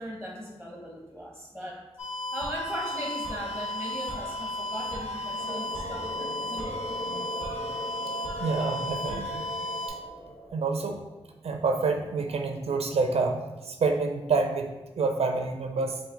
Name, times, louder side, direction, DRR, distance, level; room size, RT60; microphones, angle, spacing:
voice 1, 0.0-1.9 2.3-6.8, equal, 5° left, -3 dB, 0.8 m, -38 dB
sound 1, 2.0-9.9, left 1 dB, 85° left, 0.9 m, -34 dB
sound 2, 5.4-11.2, right 1 dB, 45° left, 1.1 m, -40 dB
voice 2, 8.4-9.5 9.9-10.0 10.5-11.0 11.4-16.0, right 4 dB, 75° right, 4 dB, 0.4 m, -28 dB
5.7 x 2.1 x 3.7 m, 1.1 s
cardioid pair, 60°, 11 cm